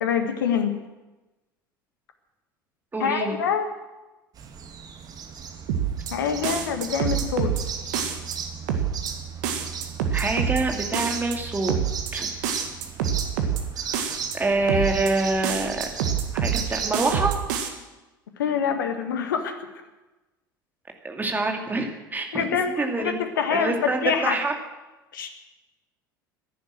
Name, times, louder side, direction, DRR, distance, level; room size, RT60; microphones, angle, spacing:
voice 1, 0.0-0.7 3.0-3.7 6.1-7.5 18.4-19.7 22.3-23.8 24.0-24.4 25.1-25.3, left 7 dB, 70° left, 7 dB, 1.5 m, -25 dB
voice 2, 2.9-3.4 10.1-11.7 12.1-12.3 13.8-15.9 16.3-17.4 21.0-22.4 22.8-23.2 23.5-24.5, right 2 dB, 15° right, 3 dB, 2.5 m, -26 dB
sound 1, 4.3-17.3, right 6 dB, 35° right, 1.9 m, -36 dB
sound 2, 5.7-6.1 6.4-7.6 7.9-8.4 8.7-9.1 9.4-10.6 10.9-11.4 11.7-12.1 12.4-13.6 13.9-14.4 14.7-15.1 15.4-16.6 16.9-17.7, right 8 dB, 60° right, 1.8 m, -26 dB
15.0 x 10.5 x 7.7 m, 1.1 s
figure-of-eight pair, 70°, 11 cm